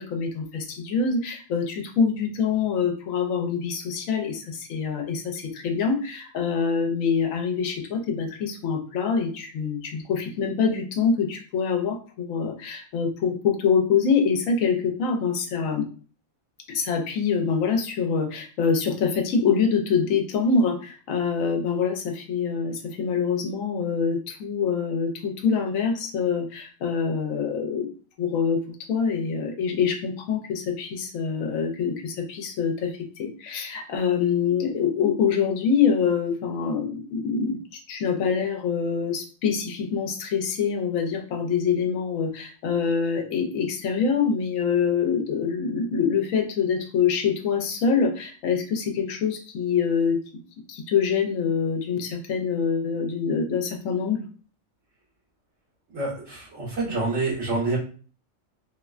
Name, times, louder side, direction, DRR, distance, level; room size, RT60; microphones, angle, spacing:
voice 1, 0.0-15.9 16.7-27.9 28.2-50.2 50.7-54.3, left 6 dB, 80° left, 4 dB, 1.1 m, -25 dB
voice 2, 55.9-57.8, right 3 dB, 70° right, -7 dB, 2.0 m, -27 dB
3.7 x 2.1 x 2.4 m, 0.40 s
omnidirectional pair, 1.4 m